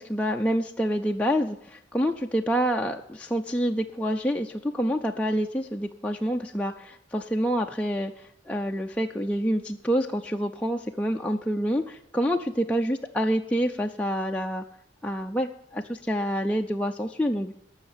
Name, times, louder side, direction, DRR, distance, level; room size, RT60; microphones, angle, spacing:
voice 1, 0.0-14.6 15.0-17.5, equal, 5° left, 1 dB, 0.4 m, -27 dB
13.5 x 6.4 x 8.9 m, 0.77 s
head